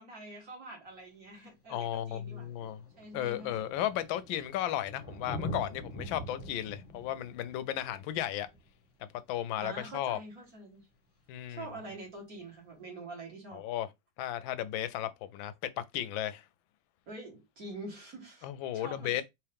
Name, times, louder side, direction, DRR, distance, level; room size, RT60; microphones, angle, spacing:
voice 1, 0.0-3.6 9.6-10.8 11.5-13.6 17.1-19.2, right 2 dB, 50° right, 2.3 m, -46 dB
Thunder, 0.9-1.0 2.0-2.1 2.3-9.6 11.3-11.4, equal, 10° left, 0.9 m, -44 dB
voice 2, 1.7-2.9 3.1-8.5 9.0-10.2 11.3-11.7 13.5-13.9 14.2-16.4 18.4-19.2, left 12 dB, 90° left, 1.3 m, -35 dB
4.6 x 3.0 x 3.5 m
omnidirectional pair, 2.1 m